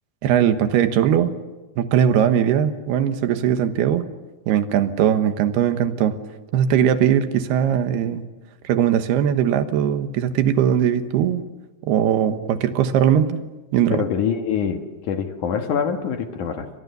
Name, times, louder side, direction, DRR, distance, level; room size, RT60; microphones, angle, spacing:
voice 1, 0.2-1.3 1.8-4.1 4.5-6.2 6.5-8.2 8.6-11.4 11.8-13.4 13.7-14.0, right 9 dB, 85° right, 9 dB, 3.3 m, -20 dB
voice 2, 13.9-16.7, left 7 dB, 60° left, 6 dB, 2.6 m, -25 dB
29.5 x 24.5 x 6.9 m, 1.1 s
omnidirectional pair, 4.5 m